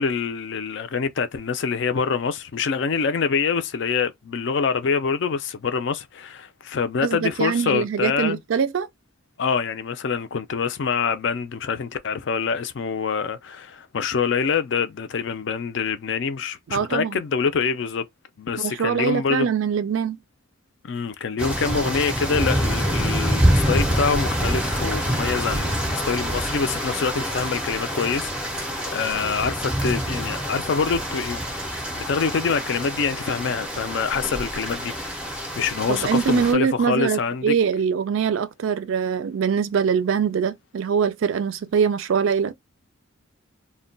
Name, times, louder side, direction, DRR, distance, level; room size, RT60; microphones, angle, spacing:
voice 1, 0.0-8.4 9.4-18.0 18.4-19.5 20.8-31.4 31.9-35.2 35.6-37.6, left 5 dB, 55° left, 0.4 m, -25 dB
voice 2, 7.0-8.9 16.7-17.2 18.6-20.2 35.9-42.5, right 6 dB, 70° right, 0.3 m, -23 dB
sound 1, 21.4-36.5, equal, 5° right, 0.5 m, -26 dB
2.2 x 2.2 x 3.8 m
head